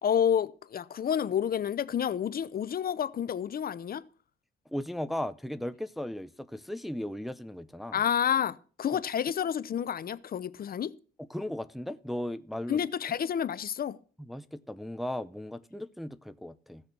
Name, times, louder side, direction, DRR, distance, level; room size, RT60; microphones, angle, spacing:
voice 1, 0.0-4.0 7.9-10.9 12.7-14.0, left 8 dB, 50° left, 0.7 m, -29 dB
voice 2, 4.7-8.0 8.9-9.0 11.2-12.8 14.3-16.8, left 1 dB, ahead, 0.6 m, -36 dB
15.5 x 6.6 x 6.0 m
cardioid pair, 90°, 20 cm